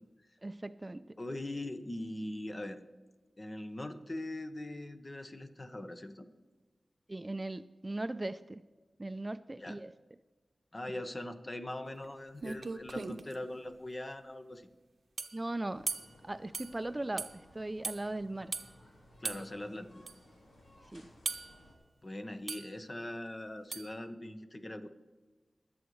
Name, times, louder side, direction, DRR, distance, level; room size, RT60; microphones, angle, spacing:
voice 1, 0.4-1.2 7.1-8.6 9.0-9.9 15.3-15.9 16.2-18.5 20.9-21.1, right 2 dB, 30° right, 13 dB, 0.4 m, -38 dB
voice 2, 1.2-2.8 3.4-6.3 9.6-9.8 10.7-14.7 19.2-20.0 22.0-24.9, left 1 dB, 40° left, 7 dB, 1.1 m, -41 dB
sound 1, 12.0-12.1 12.4-13.3 15.2-15.4 15.9-16.1 16.5-16.7 17.2-17.3 17.8-18.0 18.5-18.7 19.2-19.4 20.1-20.2 21.3-21.6 22.5-22.7 23.7-23.9, right 4 dB, 75° right, 0.7 m, -38 dB
sound 2, 15.7-21.8, left 1 dB, 90° left, 2.2 m, -59 dB
22.5 x 8.0 x 3.2 m, 1.3 s
cardioid pair, 45°, 0 cm